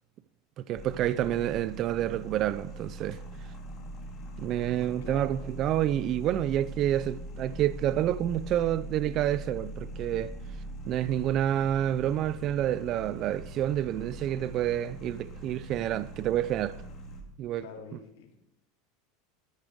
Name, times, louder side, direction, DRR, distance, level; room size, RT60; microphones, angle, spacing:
voice 1, 0.6-3.2 4.4-10.3 10.9-16.8 17.4-17.6, right 12 dB, 35° right, 0.4 m, -28 dB
sound 1, 0.7-17.2, right 1 dB, 25° left, 3.0 m, -42 dB
voice 2, 17.6-18.4, left 7 dB, 85° left, 3.1 m, -45 dB
13.0 x 11.0 x 6.3 m
supercardioid pair, 155°, 0 cm